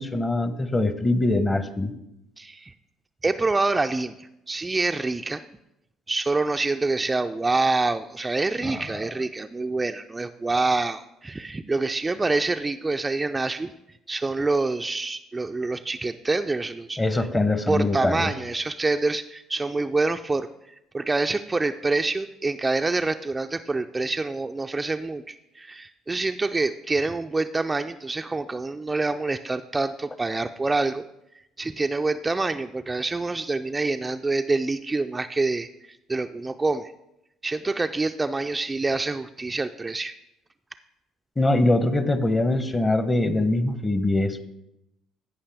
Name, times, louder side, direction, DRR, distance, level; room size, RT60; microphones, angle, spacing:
voice 1, 0.0-1.9 8.6-9.0 17.0-18.3 41.4-44.4, left 2 dB, 20° left, 12 dB, 0.8 m, -23 dB
voice 2, 2.4-2.7 3.2-5.4 6.1-13.7 14.1-17.3 17.7-20.5 20.9-31.1 31.6-35.7 36.1-36.9 37.4-40.1, right 3 dB, 20° right, 7 dB, 0.3 m, -26 dB
15.0 x 5.5 x 3.4 m, 0.85 s
hypercardioid pair, 55°, 0 cm